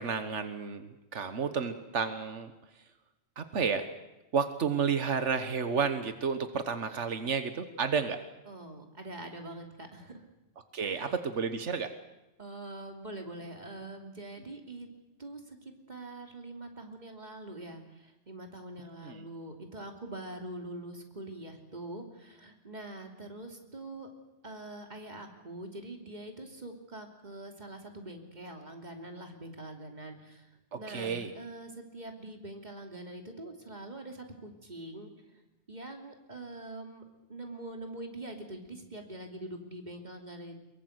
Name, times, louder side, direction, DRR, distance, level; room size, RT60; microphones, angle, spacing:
voice 1, 0.0-2.5 3.4-3.9 4.3-8.2 10.7-11.9 19.0-19.3 30.7-31.3, right 6 dB, 85° right, 9 dB, 1.6 m, -31 dB
voice 2, 8.5-10.2 10.8-11.1 12.4-14.9 15.2-24.1 24.4-35.1 35.7-37.0 37.3-40.6, right 1 dB, 40° right, 3 dB, 3.1 m, -44 dB
23.0 x 22.5 x 8.1 m, 0.95 s
omnidirectional pair, 1.2 m